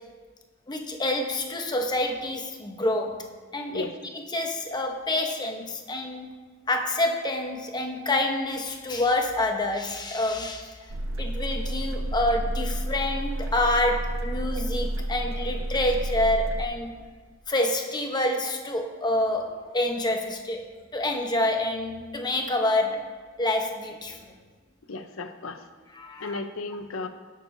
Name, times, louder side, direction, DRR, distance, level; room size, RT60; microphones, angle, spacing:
voice 1, 0.7-3.1 3.5-6.3 6.7-10.7 11.2-16.9 17.5-20.6 20.9-23.1 23.4-24.3 25.9-26.4, left 1 dB, 20° left, 3 dB, 0.9 m, -27 dB
sound 1, 10.9-16.7, right 1 dB, 85° right, 0.7 m, -30 dB
voice 2, 24.9-25.6 26.2-27.1, left 3 dB, 85° left, 7 dB, 0.7 m, -34 dB
18.0 x 6.6 x 2.7 m, 1.5 s
head